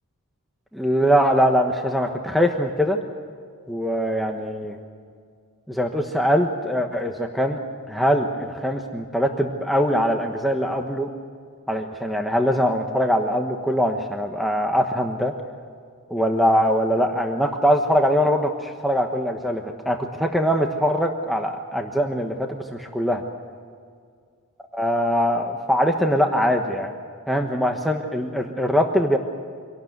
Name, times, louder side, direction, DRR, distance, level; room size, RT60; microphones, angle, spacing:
voice 1, 0.7-3.0 3.7-4.8 5.7-7.6 7.9-11.1 11.7-15.3 16.1-23.2 24.7-26.9 27.3-29.2, equal, ahead, 2 dB, 1.2 m, -22 dB
25.5 x 18.0 x 8.2 m, 2.1 s
head